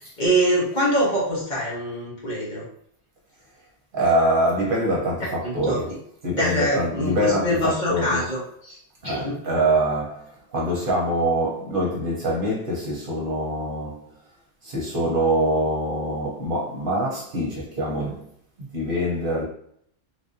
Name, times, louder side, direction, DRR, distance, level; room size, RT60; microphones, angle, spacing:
voice 1, 0.2-2.6 5.4-5.8 6.3-8.8 9.0-9.4, right 1 dB, 45° left, 1.1 m, -24 dB
voice 2, 3.9-8.3 9.0-14.1 14.6-18.3 18.6-19.4, right 1 dB, 55° right, 0.9 m, -24 dB
3.3 x 2.6 x 2.6 m
omnidirectional pair, 1.2 m